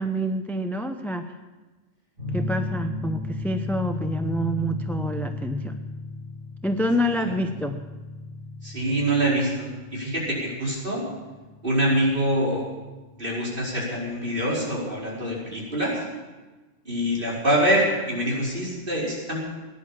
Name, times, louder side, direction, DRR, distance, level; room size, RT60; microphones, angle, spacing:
voice 1, 0.0-1.3 2.3-5.8 6.6-7.8, equal, ahead, 6 dB, 0.5 m, -27 dB
sound 1, 2.2-13.4, left 2 dB, 80° right, 5.4 m, -35 dB
voice 2, 8.6-11.1 11.6-12.6 13.2-15.9 16.9-19.4, right 1 dB, 40° right, -5 dB, 5.2 m, -25 dB
17.5 x 11.0 x 7.2 m, 1.2 s
omnidirectional pair, 1.3 m